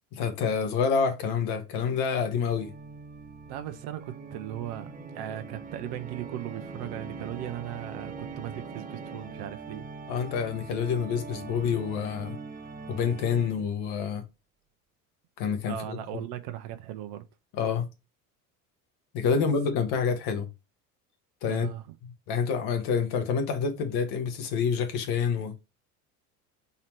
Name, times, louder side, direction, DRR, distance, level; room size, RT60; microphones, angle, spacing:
voice 1, 0.1-2.7 10.1-12.4 12.9-14.2 15.4-15.8 17.5-17.9 19.1-20.5 21.4-21.7 22.3-25.5, left 6 dB, 60° left, 1.1 m, -27 dB
Organ, 2.1-13.9, right 4 dB, 20° right, 0.6 m, -42 dB
voice 2, 3.5-9.9 15.7-17.2 21.5-22.0, right 12 dB, 60° right, 0.7 m, -38 dB
4.0 x 2.9 x 4.2 m
hypercardioid pair, 70°, 45 cm